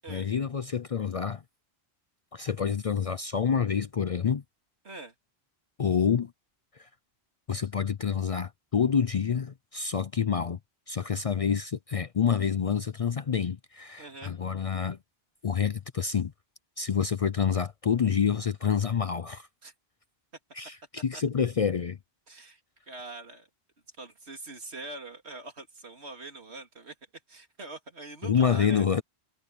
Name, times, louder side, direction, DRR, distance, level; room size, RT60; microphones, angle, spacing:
voice 1, 0.1-1.4 2.3-4.4 5.8-6.3 7.5-10.6 10.9-15.0 15.4-16.3 16.8-19.5 20.6-20.8 21.0-22.0 28.2-29.0, left 7 dB, 45° left, 0.5 m, -27 dB
voice 2, 4.8-5.1 14.0-14.3 19.6-19.7 21.1-21.2 22.3-22.6 22.9-23.5 24.0-26.9 27.3-28.8, right 3 dB, 90° right, 3.0 m, -43 dB
omnidirectional pair, 1.1 m